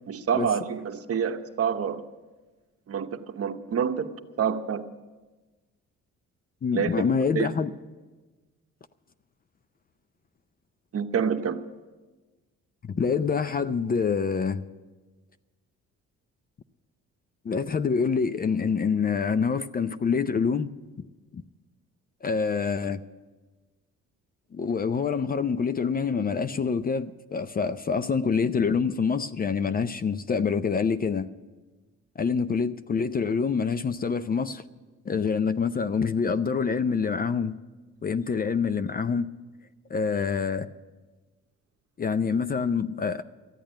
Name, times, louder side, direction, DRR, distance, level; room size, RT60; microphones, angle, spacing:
voice 1, 0.1-2.0 2.9-4.1 4.4-4.8 6.7-7.0 7.3-7.5 10.9-11.6, right 7 dB, 50° right, 1.0 m, -27 dB
voice 2, 6.6-7.7 12.8-14.7 17.4-20.7 21.3-21.4 22.2-23.0 24.5-31.3 32.2-34.6 35.1-37.6 38.0-39.3 39.9-40.7 42.0-43.2, left 5 dB, 30° left, 0.5 m, -26 dB
14.0 x 8.7 x 9.0 m
cardioid pair, 90°, 30 cm